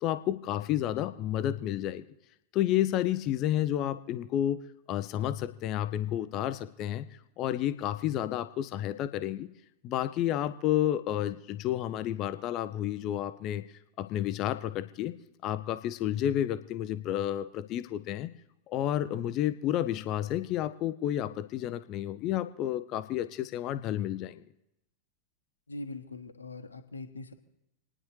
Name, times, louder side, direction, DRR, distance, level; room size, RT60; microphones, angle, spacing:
voice 1, 0.0-2.0 2.5-4.6 4.9-7.1 7.4-9.5 9.8-13.6 14.0-15.1 15.4-18.3 18.7-24.4, left 12 dB, 35° left, 11 dB, 0.6 m, -30 dB
voice 2, 25.7-27.3, left 2 dB, 80° left, 5 dB, 1.1 m, -42 dB
29.0 x 9.9 x 3.2 m, 0.88 s
figure-of-eight pair, 90°, 0 cm